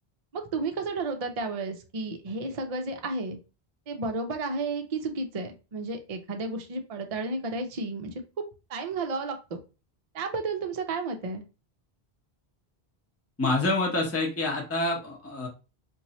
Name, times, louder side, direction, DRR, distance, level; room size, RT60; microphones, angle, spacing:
voice 1, 0.3-3.4 3.9-8.1 8.7-9.6 10.1-11.4, right 3 dB, 45° right, 5 dB, 0.6 m, -32 dB
voice 2, 13.4-15.5, left 2 dB, 15° left, 0 dB, 0.8 m, -27 dB
3.0 x 2.6 x 4.0 m, 0.31 s
omnidirectional pair, 1.1 m